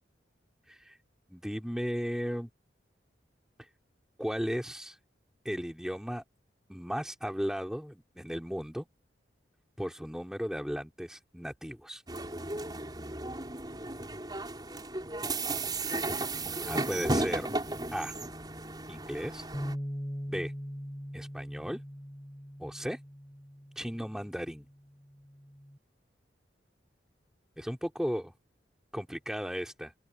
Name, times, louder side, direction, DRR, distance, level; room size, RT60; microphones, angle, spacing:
voice 1, 1.3-2.5 4.2-5.0 5.5-6.2 6.7-8.9 9.8-12.0 16.7-17.5 17.9-18.1 18.9-19.4 20.3-20.5 21.1-21.8 22.6-23.0 23.8-24.7 27.6-28.3 28.9-29.9, equal, 5° right, 3.4 m, -35 dB
sound 1, 12.1-19.8, right 2 dB, 20° right, 6.0 m, -34 dB
Bass guitar, 19.5-25.8, equal, 15° left, 6.8 m, -41 dB
open air
head